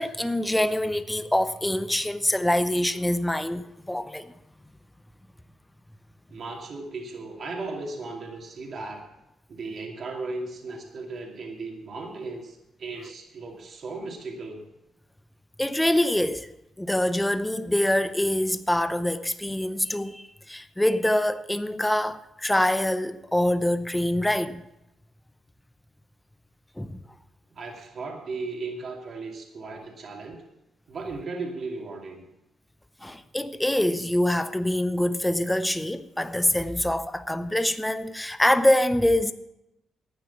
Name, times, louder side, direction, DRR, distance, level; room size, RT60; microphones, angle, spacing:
voice 1, 0.0-4.3 15.6-16.5 16.8-24.6 26.8-27.0 33.0-39.3, left 1 dB, 5° left, 0.7 m, -25 dB
voice 2, 6.3-9.0 9.5-14.6 27.5-30.4 30.9-32.2, right 3 dB, 50° right, 2.5 m, -36 dB
11.5 x 9.3 x 7.0 m
cardioid pair, 95°, 0 cm